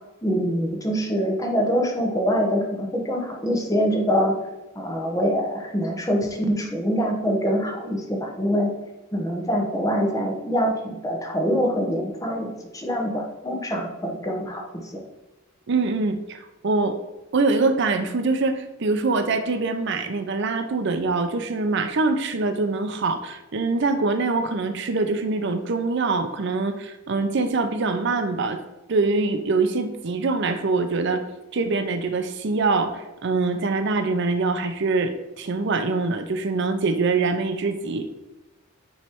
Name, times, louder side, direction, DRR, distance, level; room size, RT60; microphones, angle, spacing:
voice 1, 0.2-4.3 4.7-8.7 9.1-15.0, equal, 15° left, 1 dB, 1.0 m, -24 dB
voice 2, 15.7-17.0 17.3-28.6 28.9-31.2 31.5-38.1, right 3 dB, 55° right, 8 dB, 0.5 m, -24 dB
9.3 x 3.2 x 4.4 m, 1.0 s
head